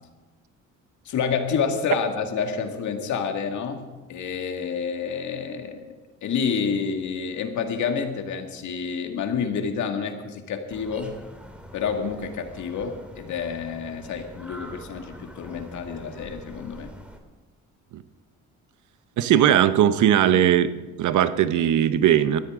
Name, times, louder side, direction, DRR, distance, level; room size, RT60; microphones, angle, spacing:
voice 1, 1.1-5.8 6.2-11.2 11.7-16.9, left 6 dB, 70° left, 4 dB, 2.1 m, -28 dB
sound 1, 10.7-17.2, equal, 5° right, 2.3 m, -44 dB
voice 2, 19.2-20.7 21.0-22.4, right 10 dB, 75° right, 12 dB, 0.9 m, -19 dB
20.5 x 14.5 x 3.7 m, 1.3 s
cardioid pair, 90°, 30 cm